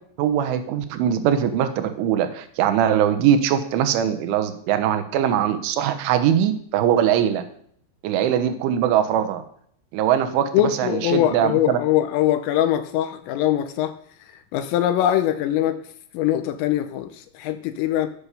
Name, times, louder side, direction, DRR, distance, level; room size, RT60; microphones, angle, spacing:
voice 1, 0.2-7.4 8.0-9.4 9.9-11.8, right 9 dB, 75° right, 3.5 m, -21 dB
voice 2, 10.5-13.9 14.5-15.8 16.1-18.1, left 12 dB, 85° left, 3.4 m, -22 dB
15.5 x 8.0 x 6.8 m
omnidirectional pair, 5.8 m